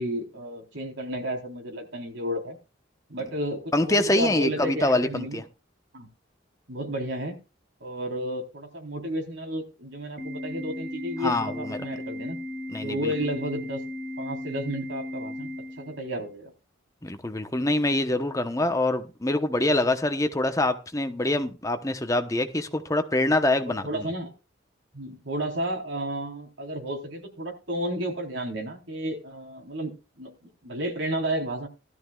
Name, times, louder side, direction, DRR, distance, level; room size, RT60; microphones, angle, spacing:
voice 1, 0.0-2.6 3.1-5.4 5.9-6.1 6.7-7.4 7.8-12.4 12.8-13.8 14.2-15.5 15.8-16.5 23.7-24.3 24.9-31.7, right 1 dB, 75° right, 4.0 m, -32 dB
voice 2, 3.7-5.4 11.2-11.8 12.7-13.1 17.0-24.0, left 2 dB, 15° left, 1.0 m, -25 dB
Organ, 10.2-16.2, left 1 dB, 50° right, 6.9 m, -36 dB
16.5 x 13.0 x 2.4 m
head